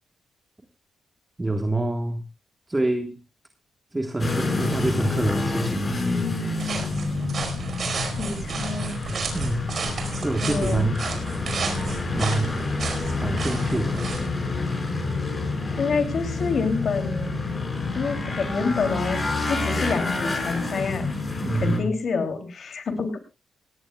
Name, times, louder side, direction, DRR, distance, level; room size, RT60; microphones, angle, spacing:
voice 1, 1.4-2.2 2.7-3.2 3.9-6.0 9.3-9.7 10.2-11.0 12.1-12.5 13.1-14.0 21.4-21.9, right 2 dB, 15° right, 5 dB, 1.6 m, -26 dB
sound 1, 4.2-21.8, left 3 dB, 30° left, 5.2 m, -28 dB
sound 2, 6.6-14.3, right 5 dB, 50° right, 4.7 m, -33 dB
voice 2, 8.2-9.0 10.4-10.9 15.8-17.3 17.9-19.2 19.5-21.1 21.5-23.2, left 4 dB, 55° left, 7 dB, 3.0 m, -27 dB
18.0 x 18.0 x 2.3 m, 0.29 s
cardioid pair, 100°, 0 cm